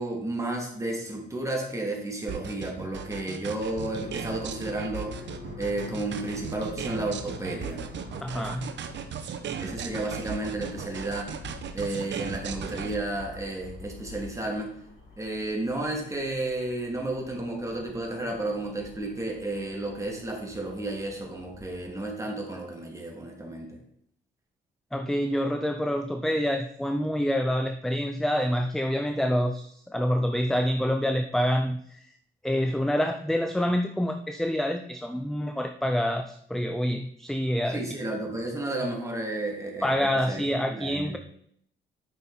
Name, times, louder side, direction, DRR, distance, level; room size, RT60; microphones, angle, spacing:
voice 1, 0.0-5.1 5.6-7.8 9.6-11.3 11.7-14.7 15.2-23.8 37.7-40.4 40.7-41.2, right 2 dB, 15° right, 0 dB, 2.6 m, -32 dB
sound 1, 2.3-12.9, right 8 dB, 65° right, 1.0 m, -37 dB
sound 2, 3.7-22.1, left 4 dB, 80° left, 3.0 m, -46 dB
voice 2, 8.2-8.7 24.9-32.0 32.4-37.8 39.8-41.2, equal, ahead, 7 dB, 0.6 m, -27 dB
8.8 x 6.1 x 4.2 m, 0.68 s
cardioid pair, 90°, 20 cm